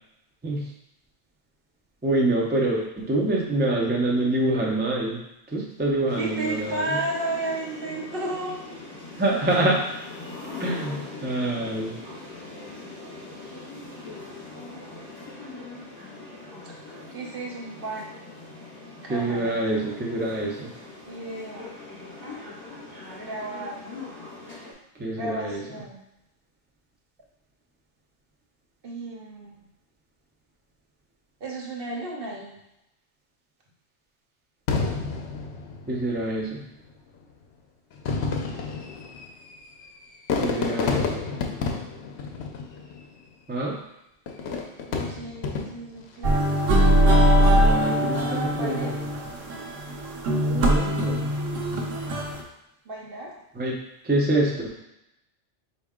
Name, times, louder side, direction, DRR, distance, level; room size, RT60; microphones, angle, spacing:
voice 1, 2.0-5.2 5.5-7.0 9.2-9.8 10.6-12.0 19.1-20.7 25.0-25.6 35.9-36.6 40.4-41.2 43.5-43.8 47.5-49.1 50.3-51.3 53.5-53.7 54.0-54.7, right 2 dB, 15° right, -2 dB, 0.4 m, -26 dB
sound 1, 6.1-24.7, left 3 dB, 25° left, 1.8 m, -41 dB
voice 2, 6.2-8.6 17.1-18.2 19.0-19.6 21.1-21.7 23.2-23.8 25.1-26.0 28.8-29.6 31.4-32.6 44.9-46.6 48.1-48.9 52.9-53.3, right 2 dB, 55° right, -2 dB, 1.0 m, -33 dB
Fireworks, 34.7-36.3 37.1-37.2 37.9-43.2 44.3-46.0 46.6-47.1, left 4 dB, 65° left, 0.8 m, -30 dB
sound 2, 46.2-52.4, equal, 85° right, 1.1 m, -21 dB
4.4 x 2.9 x 3.6 m, 0.86 s
omnidirectional pair, 1.2 m